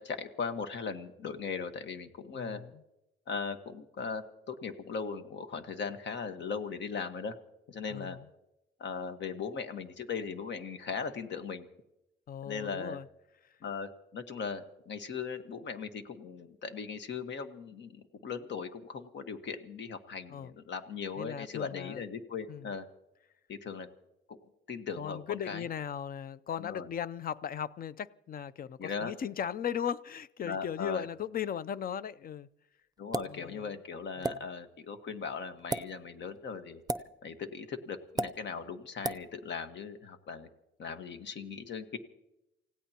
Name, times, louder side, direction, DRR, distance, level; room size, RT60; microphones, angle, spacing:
voice 1, 0.0-2.6 3.3-7.3 7.7-8.2 8.8-11.7 12.4-13.0 13.6-22.9 23.5-23.9 24.3-24.4 24.7-25.7 26.6-26.9 28.8-29.1 30.4-31.1 33.0-36.8 37.2-40.5 40.8-42.0, left 5 dB, 65° left, 1.5 m, -38 dB
voice 2, 2.3-2.7 7.9-8.2 12.3-13.1 20.3-20.5 21.2-22.0 22.5-22.7 25.0-32.5 33.2-33.7 34.2-34.4, left 8 dB, 45° left, 0.6 m, -37 dB
sound 1, 33.1-33.4 34.2-34.4 35.6-35.8 36.9-37.1 38.2-38.3 39.0-39.2, right 2 dB, 20° right, 0.6 m, -31 dB
29.0 x 16.5 x 2.9 m
cardioid pair, 90°, 20 cm